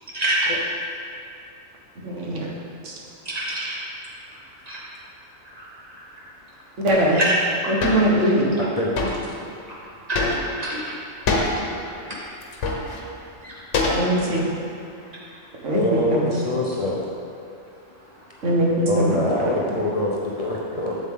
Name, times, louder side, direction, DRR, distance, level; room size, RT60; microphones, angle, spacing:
voice 1, 0.1-0.5 3.2-3.8 4.7-4.8 5.5-5.6 7.1-7.4 10.1-10.2 10.6-10.9 12.1-12.2 13.4-13.5, right 1 dB, 35° right, -6 dB, 1.7 m, -25 dB
voice 2, 2.0-2.5 2.8-2.9 6.8-7.2 7.7-8.5 13.9-14.4 15.6-16.4 18.4-19.5, right 1 dB, 85° right, -3 dB, 1.6 m, -21 dB
sound 1, 7.8-8.1 9.0-9.2 10.1-10.6 11.3-11.6 12.4-13.0 13.7-14.4, left 3 dB, 80° left, 1.3 m, -24 dB
voice 3, 8.6-9.3 15.7-17.1 18.9-21.0, left 1 dB, 40° left, -4 dB, 0.6 m, -25 dB
7.8 x 7.3 x 3.6 m, 2.6 s
omnidirectional pair, 1.2 m